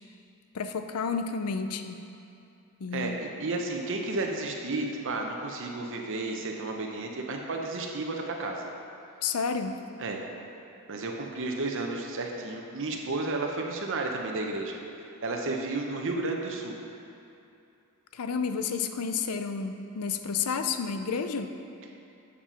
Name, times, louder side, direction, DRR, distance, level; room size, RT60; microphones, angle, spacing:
voice 1, 0.5-2.0 2.8-3.2 9.2-9.8 18.1-21.5, left 5 dB, 85° left, 8 dB, 0.5 m, -31 dB
voice 2, 2.9-8.7 10.0-10.2 10.9-14.8 15.2-16.7, right 2 dB, 60° right, 1 dB, 0.8 m, -32 dB
7.4 x 7.1 x 5.7 m, 2.6 s
head